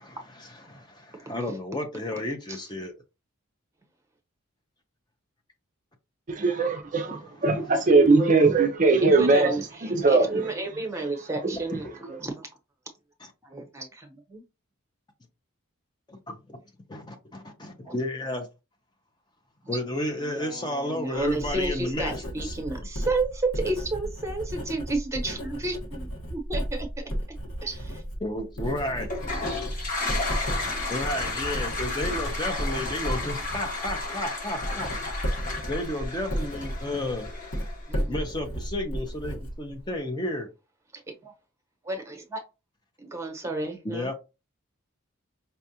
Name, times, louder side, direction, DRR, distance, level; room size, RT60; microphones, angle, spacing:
voice 1, 0.0-2.9 7.1-7.4 9.1-9.2 11.8-11.9 16.1-16.6 16.9-18.5 19.7-22.1 22.4-22.5 28.2-29.1 30.9-34.9 35.7-37.3 38.1-40.5 43.8-44.1, left 1 dB, 20° left, 0.6 m, -32 dB
voice 2, 6.3-9.5 9.8-10.4, right 3 dB, 35° right, 0.4 m, -20 dB
voice 3, 9.1-12.5 13.4-14.4 17.8-17.9 19.6-19.8 20.2-27.1 27.6-28.0 37.9-38.2 40.9-41.3 41.8-42.4 43.0-44.1, right 2 dB, 15° right, 0.9 m, -32 dB
Writing, 21.1-40.0, equal, 85° left, 1.2 m, -34 dB
Toilet flush, 29.0-37.9, left 3 dB, 35° left, 1.1 m, -33 dB
5.4 x 2.4 x 2.7 m
head